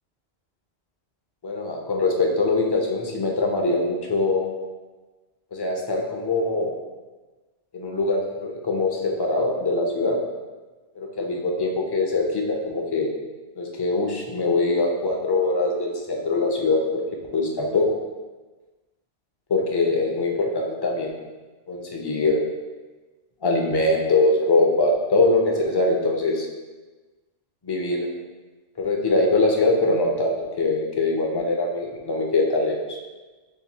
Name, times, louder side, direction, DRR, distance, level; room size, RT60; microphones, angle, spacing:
voice 1, 1.4-4.5 5.5-6.7 7.7-10.2 11.0-13.1 13.6-17.0 17.3-17.9 19.5-21.1 21.7-22.4 23.4-26.5 27.6-28.1 28.8-33.0, left 2 dB, 30° left, -1 dB, 0.5 m, -23 dB
7.0 x 3.0 x 2.2 m, 1.3 s
omnidirectional pair, 1.1 m